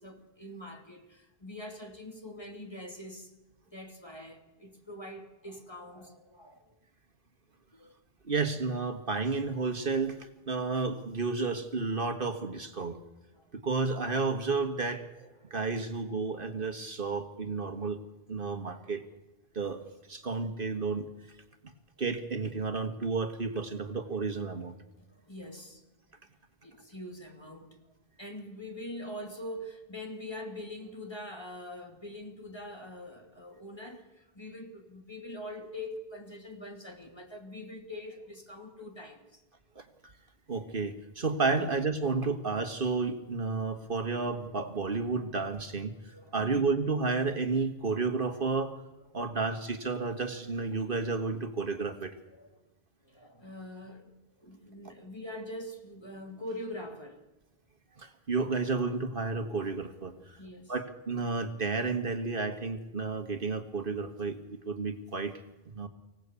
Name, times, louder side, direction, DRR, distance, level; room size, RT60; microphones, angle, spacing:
voice 1, 0.0-3.3 3.7-6.7 7.7-7.9 13.3-13.5 25.0-25.8 26.6-27.8 28.2-39.4 46.1-46.8 52.3-52.6 53.0-54.1 54.4-57.2 60.2-60.7, left 1 dB, 25° left, 2.5 m, -44 dB
voice 2, 8.2-13.0 13.5-18.0 18.3-19.0 19.6-19.8 20.1-21.1 21.6-21.7 22.0-24.7 39.8-39.9 40.5-48.7 49.1-52.1 58.0-60.4 60.7-65.3 65.7-65.9, right 4 dB, 60° right, 1.8 m, -31 dB
24.5 x 17.0 x 8.4 m
omnidirectional pair, 1.0 m